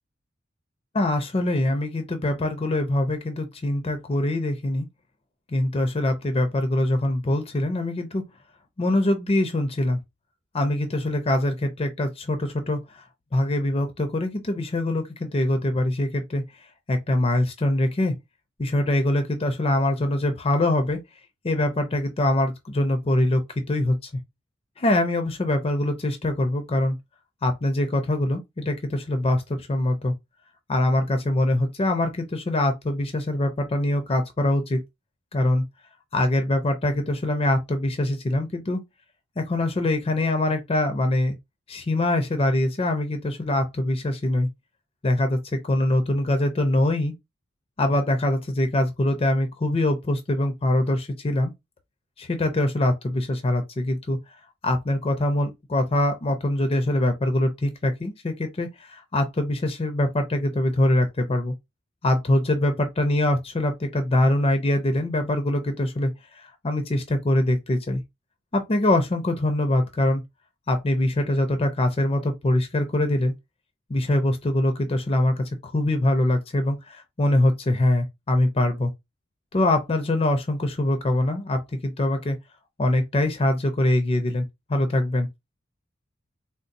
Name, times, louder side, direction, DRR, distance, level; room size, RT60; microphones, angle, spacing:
voice 1, 0.9-4.9 5.5-8.3 8.8-10.0 10.5-13.0 13.3-16.4 16.9-18.2 18.6-21.0 21.4-23.4 23.7-24.1 24.8-27.0 27.4-30.1 30.7-34.8 35.3-35.7 36.1-38.8 39.4-41.4 41.7-44.5 45.0-47.1 47.8-51.5 52.2-54.2 54.6-61.5 62.0-68.0 68.5-70.2 70.7-73.3 73.9-78.9 79.5-82.4 82.8-84.4 84.7-85.3, left 1 dB, 30° left, 0.5 m, -23 dB
3.9 x 2.0 x 2.5 m
head